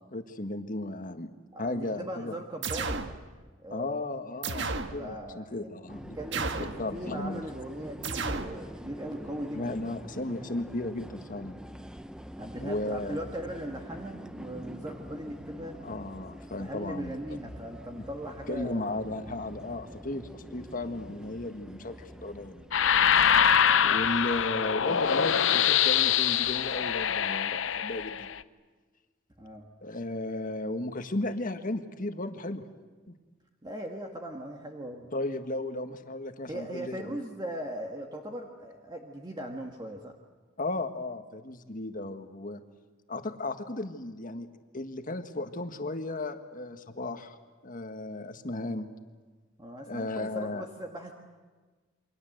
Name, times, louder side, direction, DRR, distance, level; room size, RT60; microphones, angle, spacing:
voice 1, 0.1-1.3 1.6-2.4 3.7-6.2 6.8-7.4 9.5-11.6 12.6-13.2 15.8-17.1 18.5-22.6 23.8-28.3 29.8-32.6 33.1-33.2 35.1-37.2 40.6-42.6 43.1-44.5 44.7-47.4 47.6-48.9 49.8-50.6, left 2 dB, 45° left, 7 dB, 1.7 m, -35 dB
voice 2, 1.5-3.0 3.6-4.0 5.0-5.7 6.1-9.9 12.4-15.8 16.6-18.9 23.3-23.6 29.4-29.7 33.6-35.1 36.5-40.1 49.6-51.1, right 1 dB, 20° right, 2 dB, 1.7 m, -39 dB
sound 1, 2.6-3.2 4.4-5.0 6.3-6.8 8.0-8.6, right 4 dB, 65° right, 1.5 m, -32 dB
sound 2, 5.9-24.5, equal, 5° right, 0.8 m, -46 dB
sound 3, 22.7-28.4, left 8 dB, 70° left, 0.7 m, -24 dB
28.5 x 24.0 x 7.9 m, 1.3 s
head